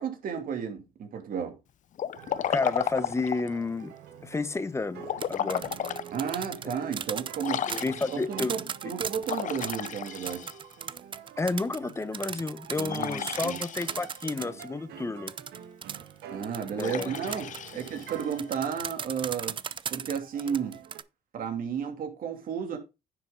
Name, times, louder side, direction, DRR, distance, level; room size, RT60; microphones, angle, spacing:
voice 1, 0.0-1.5 6.1-10.4 12.8-13.6 16.3-19.6 19.9-20.8 21.3-22.8, right 7 dB, 55° right, 2.8 m, -33 dB
Liquid, 1.9-3.6 5.0-6.1 6.6-6.7 7.4-8.4 9.2-10.8 12.9-14.2 16.8-18.4, left 10 dB, 50° left, 0.7 m, -34 dB
sound 1, 2.1-18.6 19.3-19.4 20.2-21.0, right 9 dB, 75° right, 1.7 m, -47 dB
voice 2, 2.5-3.9 4.2-5.7 7.7-8.5 11.4-15.4 16.8-17.2, left 3 dB, 15° left, 0.9 m, -31 dB
sound 2, 5.0-14.7 15.3-21.0, right 7 dB, 30° right, 0.5 m, -37 dB
9.9 x 7.3 x 3.8 m
cardioid pair, 110°, 17 cm